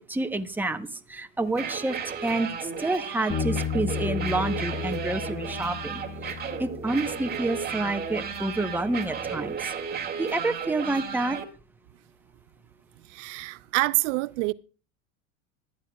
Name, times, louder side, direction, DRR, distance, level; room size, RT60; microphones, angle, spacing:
voice 1, 0.1-9.6 10.2-11.4, right 2 dB, 5° right, 0.9 m, -29 dB
sound 1, 1.5-11.4, right 6 dB, 25° right, 2.1 m, -34 dB
Bass guitar, 3.3-9.6, left 7 dB, 20° left, 1.2 m, -35 dB
voice 2, 13.1-14.5, right 22 dB, 70° right, 0.6 m, -26 dB
18.5 x 12.0 x 2.3 m
hypercardioid pair, 95°, 39 cm